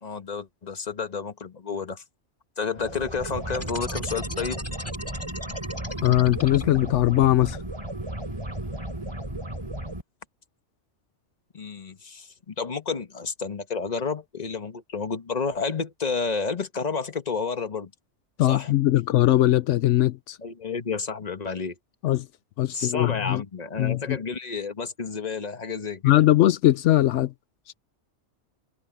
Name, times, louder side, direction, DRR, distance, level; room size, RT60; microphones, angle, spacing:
voice 1, 0.0-2.0 2.6-4.6 11.5-17.9 18.4-18.7 20.4-21.7 22.7-26.1, left 5 dB, 35° left, 1.3 m, -30 dB
sound 1, 2.8-10.0, right 1 dB, 25° right, 3.5 m, -34 dB
sound 2, 3.5-7.0, left 1 dB, 10° left, 1.8 m, -38 dB
voice 2, 6.0-7.6 18.4-20.4 22.0-22.2 22.6-23.4 23.8-24.2 26.0-27.3, left 14 dB, 80° left, 0.9 m, -20 dB
omnidirectional pair, 1.2 m